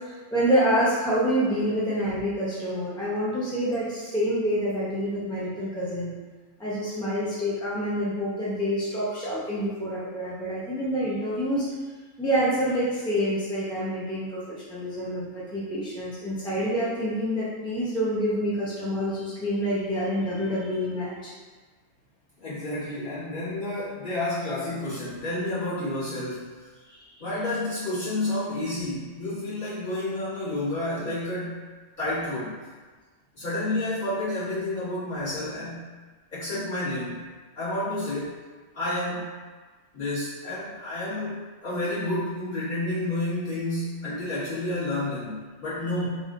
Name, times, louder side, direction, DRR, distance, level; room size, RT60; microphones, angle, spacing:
voice 1, 0.1-6.1 6.6-11.7 12.2-21.3 26.9-27.0, equal, 5° left, -9 dB, 0.6 m, -27 dB
voice 2, 22.4-26.6 27.2-31.6 32.0-32.6 33.4-35.8 36.3-37.3 37.6-38.4 38.7-39.3 39.9-46.2, left 1 dB, 40° left, -12 dB, 1.7 m, -30 dB
3.5 x 2.5 x 3.7 m, 1.4 s
omnidirectional pair, 1.3 m